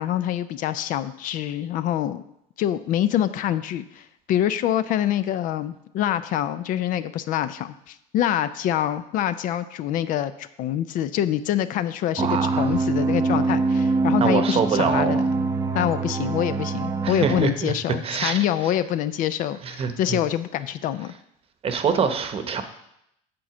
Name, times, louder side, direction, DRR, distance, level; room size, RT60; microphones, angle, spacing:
voice 1, 0.0-2.2 2.6-15.3 15.7-21.1, left 11 dB, 55° left, 13 dB, 0.5 m, -25 dB
sound 1, 12.2-17.5, right 3 dB, 20° right, 0.6 m, -24 dB
voice 2, 12.2-12.7 14.2-15.2 17.0-17.7 18.0-18.4 19.6-20.2 21.6-22.6, right 6 dB, 35° right, 8 dB, 0.9 m, -24 dB
7.6 x 4.3 x 7.0 m, 0.78 s
supercardioid pair, 110°, 17 cm